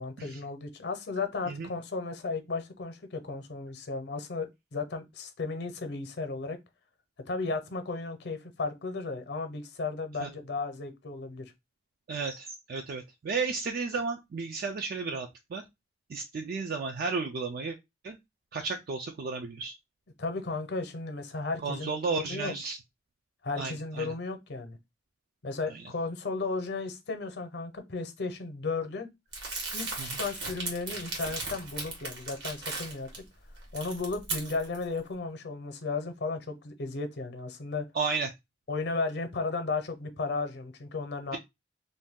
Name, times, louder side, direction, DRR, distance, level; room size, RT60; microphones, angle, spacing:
voice 1, 0.0-6.6 7.3-11.5 20.2-22.5 23.4-24.8 25.4-29.1 29.7-33.2 33.7-37.8 38.7-41.4, left 3 dB, 65° left, 0.7 m, -34 dB
voice 2, 12.1-15.6 16.1-17.8 18.0-18.2 18.5-19.8 21.6-22.8 23.6-24.1 30.0-30.1 37.9-38.3, right 4 dB, 55° right, 0.4 m, -33 dB
Crumpling crinkling, 29.3-33.2 33.6-34.8, right 3 dB, 70° right, 1.2 m, -37 dB
2.6 x 2.3 x 3.5 m
head